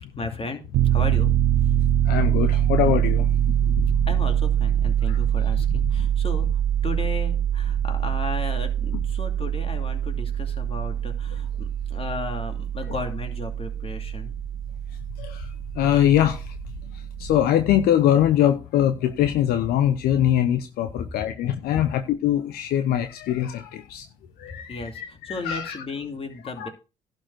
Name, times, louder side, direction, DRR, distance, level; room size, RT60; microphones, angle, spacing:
voice 1, 0.2-0.6 0.9-1.4 4.1-6.5 6.8-14.3 21.0-21.1 24.5-26.7, left 3 dB, 35° left, 2.6 m, -35 dB
Piano, 0.7-17.4, right 10 dB, 75° right, 0.9 m, -24 dB
voice 2, 2.1-3.9 5.1-5.2 15.2-15.5 15.8-16.4 17.2-24.1 24.4-25.8 26.6-26.7, left 11 dB, 75° left, 0.8 m, -23 dB
11.5 x 4.8 x 6.3 m
hypercardioid pair, 50°, 16 cm